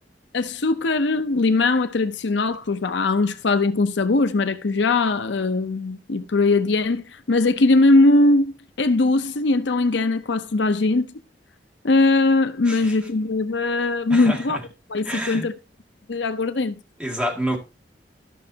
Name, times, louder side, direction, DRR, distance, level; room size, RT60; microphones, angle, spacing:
voice 1, 0.3-11.1 11.8-14.6 14.9-15.5 16.1-16.7, left 2 dB, 75° left, 0.7 m, -20 dB
voice 2, 14.1-14.6 15.0-15.5 17.0-17.6, equal, 5° right, 2.1 m, -28 dB
13.5 x 6.1 x 2.8 m
head